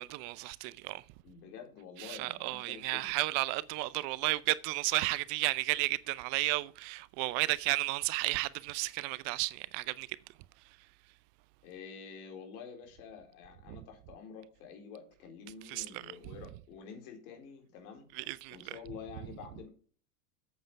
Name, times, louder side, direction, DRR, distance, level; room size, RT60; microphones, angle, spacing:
voice 1, 0.0-1.0 2.0-10.1 15.7-15.8 18.2-18.6, right 21 dB, 50° right, 0.6 m, -33 dB
voice 2, 1.2-3.2 11.6-19.7, left 6 dB, 65° left, 4.1 m, -48 dB
8.8 x 8.2 x 4.8 m
hypercardioid pair, 100°, 47 cm